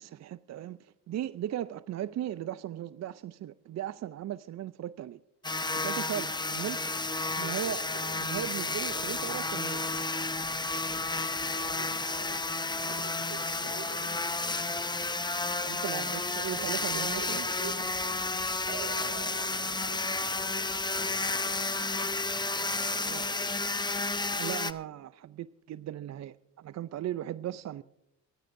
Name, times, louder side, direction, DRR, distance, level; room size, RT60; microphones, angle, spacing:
voice 1, 0.0-5.2 5.7-6.8 7.4-7.8 8.2-9.8 15.6-17.4 23.1-23.2 24.4-27.8, right 12 dB, 35° right, 16 dB, 0.5 m, -37 dB
sound 1, 5.4-24.7, left 3 dB, 10° left, 0.7 m, -32 dB
voice 2, 7.2-9.4 11.6-14.7 15.8-17.9 18.7-23.8, right 7 dB, 55° right, 5 dB, 2.3 m, -48 dB
25.5 x 14.0 x 2.6 m, 0.81 s
supercardioid pair, 75°, 48 cm